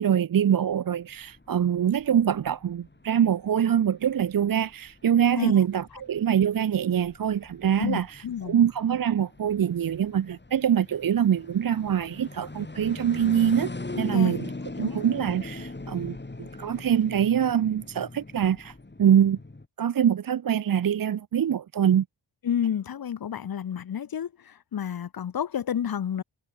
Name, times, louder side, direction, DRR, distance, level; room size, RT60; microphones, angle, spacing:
voice 1, 0.0-13.7 14.0-14.5 14.8-18.7 19.0-19.4 19.8-22.0, right 9 dB, 50° right, 0.6 m, -24 dB
sound 1, 0.7-19.7, left 2 dB, 25° left, 7.8 m, -41 dB
voice 2, 7.8-8.6 14.1-14.4 14.8-15.0 22.4-26.2, left 9 dB, 50° left, 0.7 m, -30 dB
wide cardioid pair, 100°, 45 cm